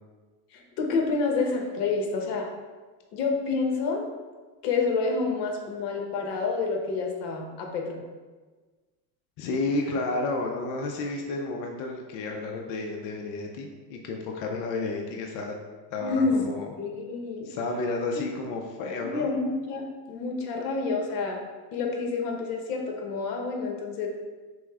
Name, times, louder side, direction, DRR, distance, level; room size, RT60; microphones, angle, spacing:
voice 1, 0.5-2.5 3.1-4.1 4.6-8.0 16.0-16.5 16.7-17.5 18.1-18.2 19.0-21.4 21.7-24.1, left 4 dB, 65° left, 1 dB, 1.0 m, -28 dB
voice 2, 9.4-15.5 15.9-16.7 17.4-19.3, left 3 dB, 40° left, 2 dB, 0.4 m, -31 dB
6.0 x 2.0 x 3.5 m, 1.3 s
supercardioid pair, 125°, 50 cm